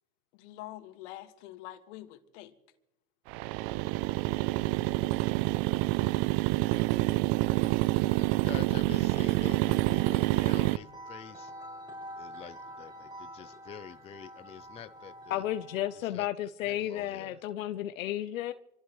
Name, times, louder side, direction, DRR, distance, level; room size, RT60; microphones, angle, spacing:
voice 1, 0.3-2.6, left 15 dB, 60° left, 1.9 m, -45 dB
sound 1, 3.3-10.8, right 19 dB, 45° right, 0.5 m, -27 dB
sound 2, 6.7-16.1, equal, 10° right, 5.8 m, -48 dB
voice 2, 8.2-11.5 12.2-15.5 15.9-17.4, left 8 dB, 15° left, 0.5 m, -47 dB
voice 3, 15.3-18.5, left 13 dB, 75° left, 0.8 m, -33 dB
27.0 x 15.0 x 3.2 m
hypercardioid pair, 100°, 41 cm